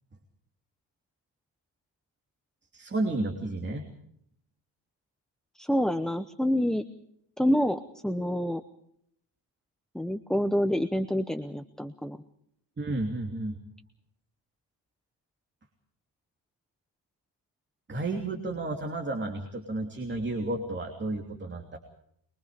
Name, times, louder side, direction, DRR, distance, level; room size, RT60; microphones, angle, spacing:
voice 1, 2.7-3.8 12.8-13.6 17.9-21.8, right 2 dB, 25° right, 2 dB, 3.1 m, -32 dB
voice 2, 5.5-6.8 7.4-8.6 9.9-12.2, equal, ahead, 10 dB, 0.8 m, -27 dB
24.0 x 23.0 x 5.1 m, 0.72 s
cardioid pair, 135°, 47 cm